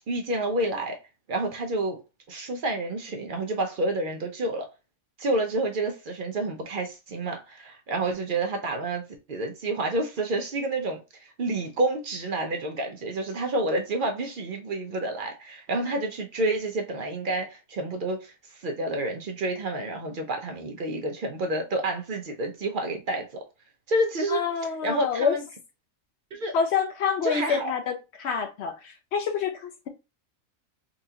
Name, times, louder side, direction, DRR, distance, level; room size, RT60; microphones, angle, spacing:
voice 1, 0.1-1.0 1.3-2.0 2.3-4.7 5.2-11.0 11.4-23.4 23.9-24.4 24.8-25.4 26.3-26.5 27.2-27.7, right 2 dB, 55° right, 0.5 m, -29 dB
voice 2, 24.3-25.4 26.5-29.9, left 6 dB, 65° left, 0.7 m, -27 dB
3.8 x 2.4 x 2.7 m
omnidirectional pair, 1.4 m